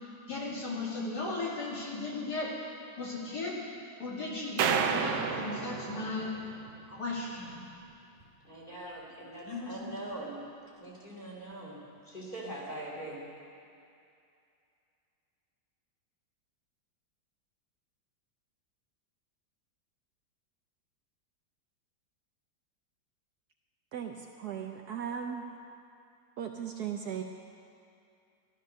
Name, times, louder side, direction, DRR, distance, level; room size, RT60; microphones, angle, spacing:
voice 1, 0.3-2.5 3.0-3.6 4.0-6.3 6.9-7.6 9.5-9.9, left 3 dB, 55° left, -5 dB, 3.1 m, -36 dB
sound 1, 4.6-6.9, right 7 dB, 90° right, 1.6 m, -31 dB
voice 2, 8.4-10.5 10.8-13.4, right 1 dB, 25° left, -4 dB, 3.2 m, -42 dB
voice 3, 23.9-25.5 26.4-27.2, right 8 dB, 65° right, 3 dB, 1.1 m, -37 dB
14.0 x 12.5 x 6.5 m, 2.5 s
omnidirectional pair, 2.1 m